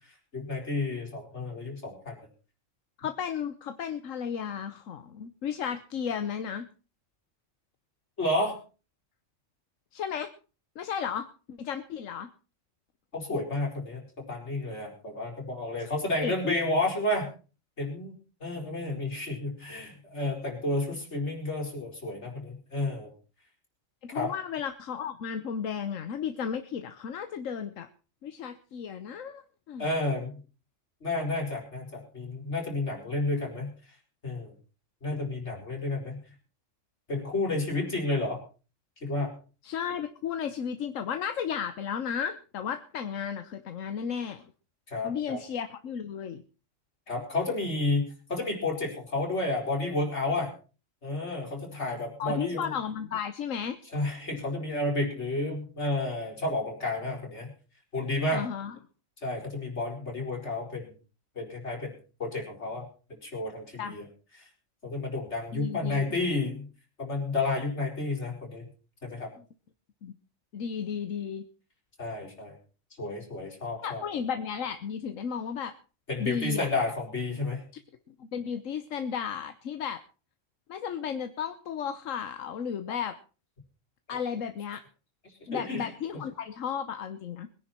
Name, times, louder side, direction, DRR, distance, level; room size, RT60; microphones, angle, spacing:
voice 1, 0.3-2.2 8.2-8.5 13.1-17.3 17.8-18.1 18.4-23.1 24.1-24.3 29.8-30.4 31.0-33.7 34.2-34.5 35.0-36.2 37.1-38.4 39.0-39.3 44.9-45.4 47.1-48.0 48.3-50.5 51.0-52.7 53.9-57.5 57.9-58.4 59.2-60.9 61.3-61.9 62.2-64.0 64.4-64.5 64.8-66.7 67.0-68.7 69.0-69.3 72.0-72.6 73.0-74.0 76.1-77.6 84.1-84.2 85.5-85.9, left 2 dB, 60° left, 0 dB, 5.0 m, -31 dB
voice 2, 3.0-6.7 9.9-10.3 10.8-12.3 16.2-16.5 24.1-27.9 28.2-29.9 39.6-44.4 45.0-46.4 52.2-53.8 58.3-58.7 63.8-64.0 65.5-66.2 70.0-70.1 70.5-71.4 73.8-75.7 76.2-76.7 78.1-80.0 80.7-83.2 84.1-84.8 85.5-87.5, left 7 dB, 85° left, 10 dB, 1.3 m, -34 dB
22.0 x 10.5 x 4.4 m, 0.36 s
omnidirectional pair, 1.3 m